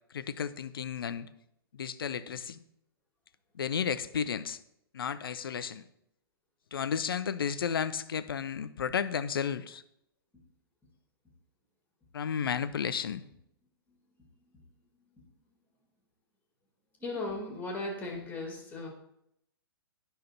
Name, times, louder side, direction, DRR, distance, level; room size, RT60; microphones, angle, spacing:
voice 1, 0.1-1.3 1.7-2.6 3.5-4.6 4.9-5.8 6.7-9.8 12.1-13.2, left 7 dB, 65° left, 14 dB, 0.5 m, -33 dB
voice 2, 17.0-18.9, left 2 dB, 10° left, 0 dB, 1.8 m, -36 dB
9.8 x 5.6 x 2.8 m, 0.76 s
figure-of-eight pair, 115°, 13 cm